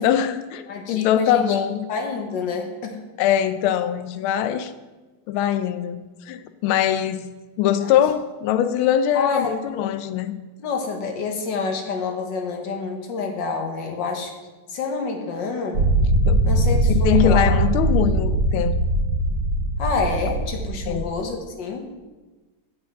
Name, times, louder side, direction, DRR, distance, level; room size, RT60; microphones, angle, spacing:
voice 1, 0.0-1.8 3.2-4.7 5.3-7.3 7.6-10.4 16.3-16.4 17.0-18.8 20.9-21.1, left 10 dB, 80° left, 12 dB, 1.4 m, -22 dB
voice 2, 0.7-1.4 1.9-2.9 7.8-7.9 9.1-9.5 10.6-14.3 14.7-15.8 16.4-17.6 19.8-21.9, left 4 dB, 65° left, 4 dB, 1.6 m, -27 dB
sound 1, 15.7-21.0, right 1 dB, 65° right, 2.2 m, -21 dB
9.0 x 7.4 x 3.5 m, 1.2 s
omnidirectional pair, 2.3 m